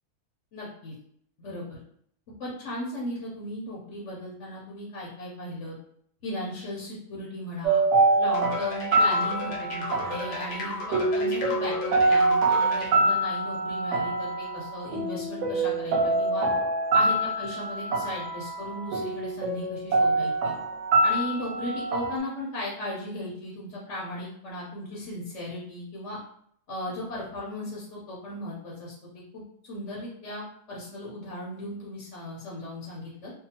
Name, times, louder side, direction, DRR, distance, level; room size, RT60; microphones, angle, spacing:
voice 1, 0.5-0.9 1.4-1.6 2.4-5.8 6.2-7.8 8.2-16.4 16.9-20.5 21.0-26.2 26.7-28.9 29.3-30.4 30.7-33.3, left 1 dB, 60° left, -5 dB, 0.9 m, -36 dB
sound 1, 7.6-22.2, right 2 dB, 70° right, 0.7 m, -25 dB
sound 2, 8.3-12.9, left 3 dB, 80° left, 1.3 m, -35 dB
2.7 x 2.3 x 2.7 m, 0.67 s
omnidirectional pair, 1.7 m